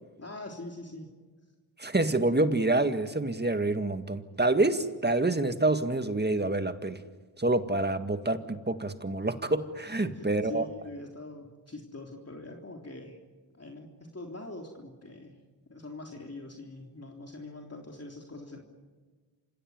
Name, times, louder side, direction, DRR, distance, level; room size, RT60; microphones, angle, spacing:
voice 1, 0.2-1.1 10.0-13.2 13.5-15.4 15.7-18.6, left 2 dB, 30° left, 1 dB, 3.5 m, -43 dB
voice 2, 1.8-7.0 7.4-10.7, right 2 dB, 20° right, 9 dB, 1.9 m, -27 dB
28.0 x 16.5 x 9.5 m, 1.4 s
supercardioid pair, 40°, 48 cm